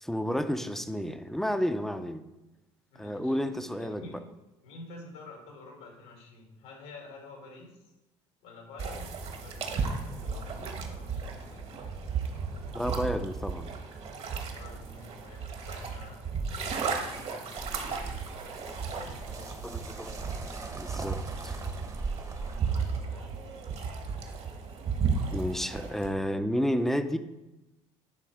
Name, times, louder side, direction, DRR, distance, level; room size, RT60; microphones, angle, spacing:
voice 1, 0.0-2.2 3.0-4.2 12.7-13.7 19.6-20.2 20.7-21.6 25.3-27.2, equal, 5° left, 9 dB, 0.6 m, -31 dB
voice 2, 2.9-4.2 4.6-7.8 8.4-9.1 9.4-11.7 14.5-16.3 16.6-18.2 18.6-19.5 22.3-23.4, left 2 dB, 85° left, -1 dB, 2.5 m, -49 dB
sound 1, 8.8-26.1, right 5 dB, 50° right, 1.4 m, -35 dB
sound 2, 17.6-23.0, right 3 dB, 25° right, 1.0 m, -41 dB
10.0 x 3.7 x 5.0 m, 0.97 s
supercardioid pair, 85°, 14 cm